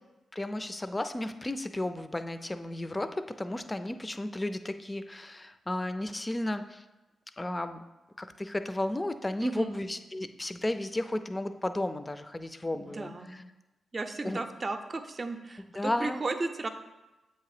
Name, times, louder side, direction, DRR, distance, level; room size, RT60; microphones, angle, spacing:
voice 1, 0.3-6.8 7.4-7.8 8.2-13.4 14.2-14.4 15.7-16.2, left 1 dB, 25° left, 10 dB, 0.4 m, -33 dB
voice 2, 9.4-9.8 12.7-13.4 13.9-16.7, right 3 dB, 40° right, 7 dB, 0.6 m, -35 dB
7.5 x 2.9 x 4.8 m, 1.1 s
supercardioid pair, 45°, 0 cm